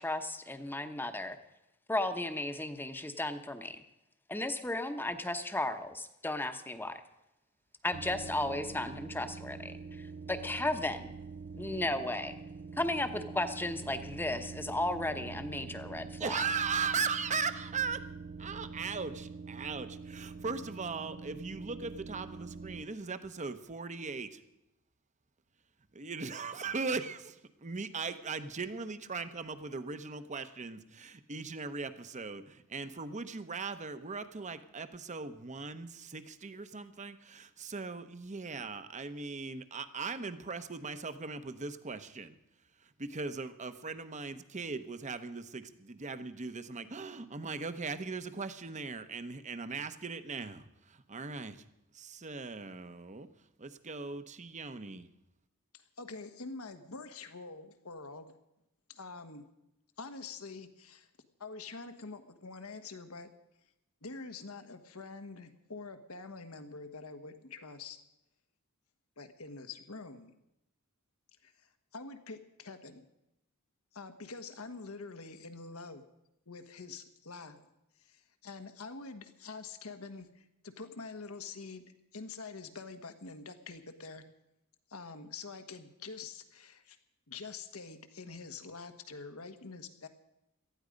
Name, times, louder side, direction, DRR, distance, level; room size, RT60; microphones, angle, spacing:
voice 1, 0.0-1.4 1.9-3.8 4.3-7.0 7.8-11.1 11.5-12.3 12.8-16.4, left 2 dB, 10° left, 8 dB, 1.0 m, -35 dB
sound 1, 7.9-22.9, right 4 dB, 50° right, 0.5 m, -45 dB
voice 2, 16.2-18.0 18.4-24.4 25.9-42.3 43.0-51.6 51.9-53.3 53.6-55.1, right 4 dB, 35° right, 11 dB, 0.9 m, -39 dB
voice 3, 55.7-58.4 58.9-59.4 60.0-61.1 61.4-63.3 64.0-68.0 69.2-70.3 71.4-73.1 73.9-76.0 76.5-77.6 78.0-81.8 82.1-84.2 84.9-87.0 87.3-90.1, left 4 dB, 80° left, 8 dB, 1.4 m, -46 dB
18.5 x 13.5 x 5.2 m, 0.88 s
head